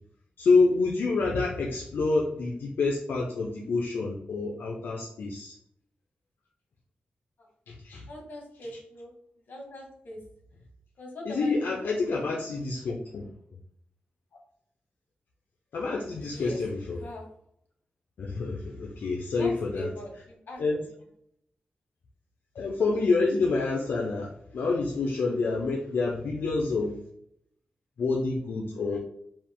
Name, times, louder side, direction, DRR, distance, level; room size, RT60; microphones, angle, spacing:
voice 1, 0.4-5.5 7.7-8.0 11.3-13.2 15.7-17.0 18.2-19.9 20.6-20.8 22.5-26.9 28.0-29.0, left 3 dB, 85° left, -2 dB, 0.6 m, -27 dB
voice 2, 8.1-9.1 9.5-10.2 11.0-11.6 11.8-12.5 14.3-14.4 16.2-16.6 16.9-17.2 19.3-20.6, equal, 60° left, -1 dB, 1.7 m, -41 dB
4.6 x 2.5 x 3.7 m, 0.71 s
wide cardioid pair, 150°, 3 cm